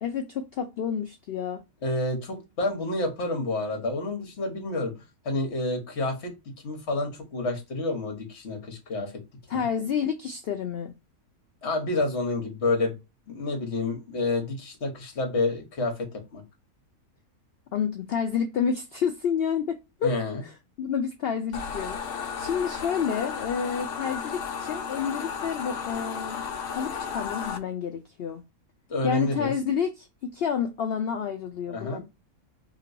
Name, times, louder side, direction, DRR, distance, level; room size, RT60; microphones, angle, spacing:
voice 1, 0.0-1.6 9.5-10.9 17.7-20.2 20.4-26.5 26.7-28.4 29.0-32.0, left 7 dB, 85° left, 0.5 m, -29 dB
voice 2, 1.8-4.9 5.2-6.3 6.6-9.2 9.5-9.7 11.6-12.9 13.3-16.4 20.0-20.4 28.9-29.5 31.7-32.0, left 2 dB, 50° left, 1.2 m, -29 dB
sound 1, 21.5-27.6, left 6 dB, 65° left, 1.0 m, -34 dB
3.0 x 2.9 x 2.5 m
omnidirectional pair, 1.6 m